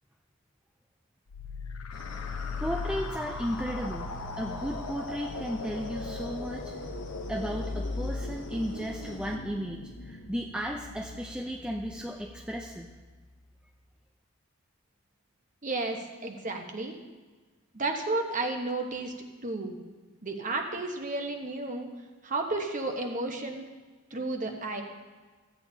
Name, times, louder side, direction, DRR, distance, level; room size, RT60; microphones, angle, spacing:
sound 1, 1.3-12.6, left 3 dB, 80° left, 0.8 m, -38 dB
sound 2, 1.9-9.4, left 1 dB, 55° left, 1.1 m, -46 dB
voice 1, 2.6-4.1 4.4-6.7 7.3-12.9, equal, 5° right, 0 dB, 0.4 m, -34 dB
voice 2, 15.6-17.0 17.7-19.1 19.4-19.8 20.2-21.9 22.2-23.6 24.1-24.8, right 2 dB, 35° right, 3 dB, 1.0 m, -32 dB
15.5 x 8.9 x 2.8 m, 1.3 s
head